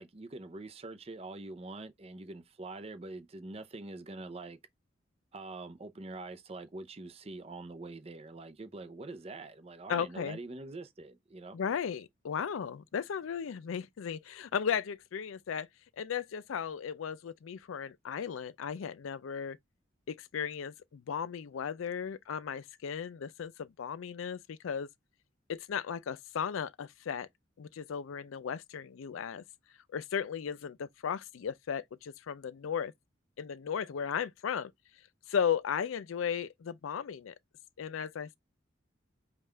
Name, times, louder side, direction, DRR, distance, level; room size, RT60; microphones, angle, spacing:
voice 1, 0.0-4.6 5.3-11.6, right 2 dB, 30° right, 0.5 m, -44 dB
voice 2, 9.9-10.4 11.5-15.7 16.0-19.6 20.1-24.9 25.5-27.3 27.6-29.4 29.9-32.9 33.4-34.7 35.3-37.3 37.8-38.4, left 7 dB, 85° left, 0.4 m, -35 dB
5.4 x 2.4 x 3.2 m
head